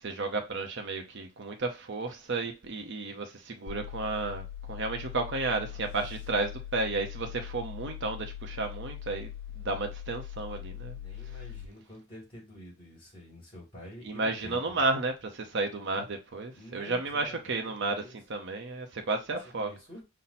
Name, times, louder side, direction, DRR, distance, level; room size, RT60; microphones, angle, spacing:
voice 1, 0.0-9.3 9.6-11.0 14.0-18.0 18.3-19.7, right 3 dB, 55° right, 0.7 m, -32 dB
sound 1, 3.7-11.7, left 10 dB, 80° left, 0.4 m, -41 dB
voice 2, 10.9-14.8 16.5-18.2 19.6-20.0, equal, 25° left, 2.5 m, -48 dB
5.6 x 2.1 x 4.1 m
head